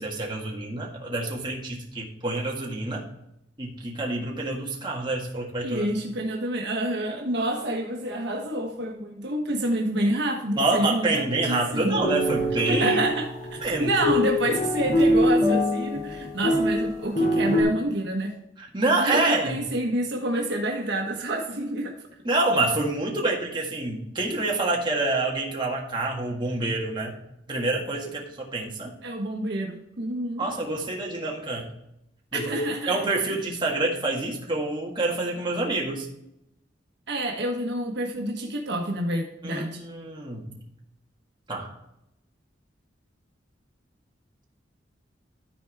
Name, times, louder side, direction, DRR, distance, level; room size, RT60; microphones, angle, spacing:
voice 1, 0.0-3.0 3.6-5.9 10.6-13.0 13.6-13.9 18.6-19.6 22.2-27.1 27.5-29.0 30.4-31.7 32.3-36.1 39.4-40.6 41.5-41.7, right 2 dB, 25° right, -2 dB, 1.8 m, -27 dB
voice 2, 5.6-12.0 12.7-18.3 19.0-21.9 29.0-30.4 32.3-33.0 37.1-39.8, right 1 dB, 65° right, 1 dB, 1.3 m, -28 dB
sound 1, 11.9-17.6, left 1 dB, 60° left, 2.4 m, -24 dB
13.0 x 4.6 x 3.5 m, 0.82 s
head